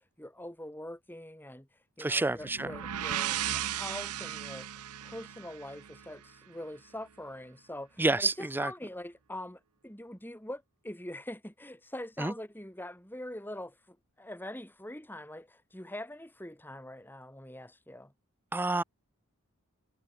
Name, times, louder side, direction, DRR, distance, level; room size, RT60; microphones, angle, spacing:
voice 1, 0.2-1.7 2.0-4.7 5.0-18.1, left 1 dB, 10° left, 3.8 m, -43 dB
voice 2, 2.0-2.7 8.0-8.7 12.2-12.3 18.5-18.8, right 2 dB, 10° right, 0.3 m, -28 dB
sound 1, 2.4-6.2, right 11 dB, 90° right, 0.7 m, -36 dB
head